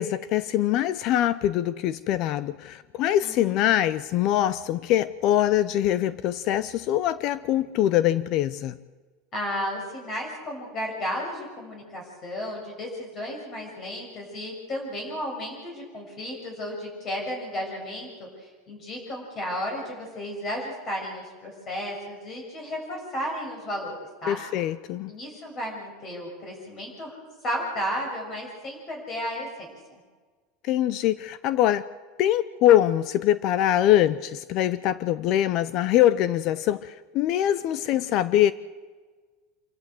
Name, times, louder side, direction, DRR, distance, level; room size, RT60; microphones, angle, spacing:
voice 1, 0.0-8.8 24.3-25.1 30.6-31.8 32.2-38.5, left 12 dB, 50° left, 0.7 m, -23 dB
voice 2, 3.2-3.6 9.3-24.4 25.1-27.2 27.4-30.0, equal, 35° left, 6.6 m, -33 dB
26.5 x 14.5 x 7.9 m
supercardioid pair, 135°, 0 cm